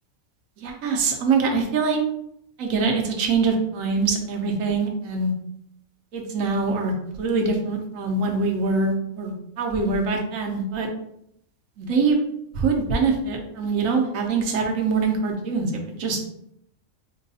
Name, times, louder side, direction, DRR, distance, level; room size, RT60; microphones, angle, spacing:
voice 1, 0.6-2.0 2.6-5.3 6.1-6.9 7.2-10.9 11.8-12.2 12.6-15.7 16.0-16.2, right 4 dB, 75° right, 1 dB, 1.0 m, -23 dB
4.6 x 2.2 x 2.7 m, 0.77 s
omnidirectional pair, 1.5 m